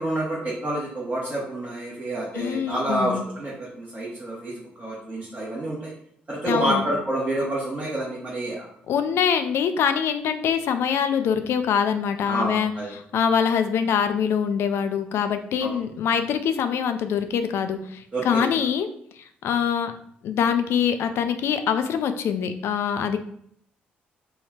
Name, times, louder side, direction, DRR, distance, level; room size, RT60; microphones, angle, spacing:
voice 1, 0.0-4.5 4.8-5.9 6.3-8.7 12.3-12.9 15.6-15.8 18.1-18.5, right 1 dB, 30° right, -7 dB, 1.0 m, -28 dB
voice 2, 2.3-3.2 6.5-6.9 8.9-18.9 19.4-19.9 20.2-23.2, left 7 dB, 55° left, 8 dB, 0.3 m, -24 dB
3.3 x 2.2 x 3.4 m, 0.65 s
figure-of-eight pair, 45°, 5 cm